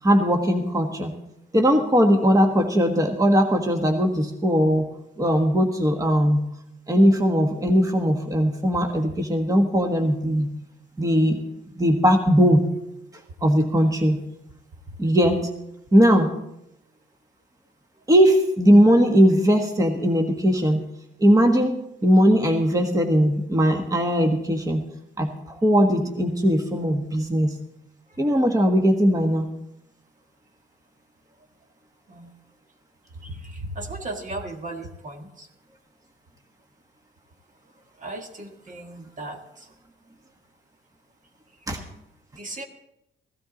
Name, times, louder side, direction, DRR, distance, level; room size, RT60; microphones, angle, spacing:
voice 1, 0.0-1.1 1.5-4.9 5.2-6.4 6.9-10.5 11.0-11.4 11.7-12.7 13.4-14.2 15.0-15.5 15.9-16.3 18.1-20.8 21.2-24.8 25.2-27.5 28.2-29.5 41.7-41.8, equal, 15° right, 4 dB, 1.4 m, -19 dB
voice 2, 33.8-34.8 38.0-38.2 38.7-39.4 42.4-42.7, right 2 dB, 40° right, 4 dB, 1.6 m, -34 dB
16.5 x 13.0 x 3.9 m, 0.83 s
cardioid pair, 90°, 20 cm